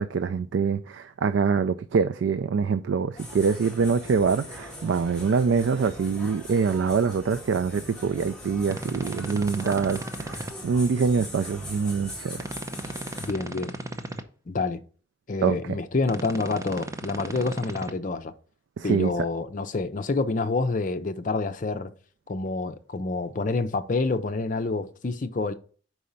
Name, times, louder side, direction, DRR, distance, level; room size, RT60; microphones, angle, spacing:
voice 1, 0.0-12.4 15.4-15.6 18.8-19.1, right 5 dB, 85° right, 0.3 m, -25 dB
sound 1, 3.1-13.3, left 1 dB, 5° left, 1.5 m, -41 dB
sound 2, 8.7-10.5 12.3-14.2 16.0-17.9, right 1 dB, 15° right, 0.5 m, -36 dB
voice 2, 13.2-13.7 14.5-14.8 15.3-18.3 18.8-21.9 22.3-25.5, left 3 dB, 45° left, 0.5 m, -28 dB
4.8 x 4.2 x 5.2 m
head